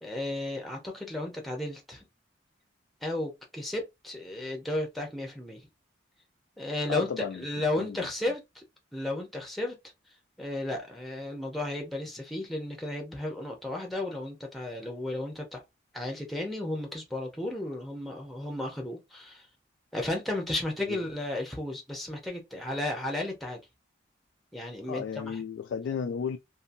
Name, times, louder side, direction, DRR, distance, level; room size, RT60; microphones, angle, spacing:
voice 1, 0.0-2.0 3.0-5.6 6.6-8.6 8.9-9.8 10.4-15.6 15.9-19.5 19.9-23.6 24.5-25.4, left 1 dB, ahead, 0.7 m, -34 dB
voice 2, 6.8-7.4 7.8-8.1 20.9-21.0 24.9-26.4, left 6 dB, 70° left, 0.3 m, -33 dB
2.7 x 2.6 x 2.6 m
head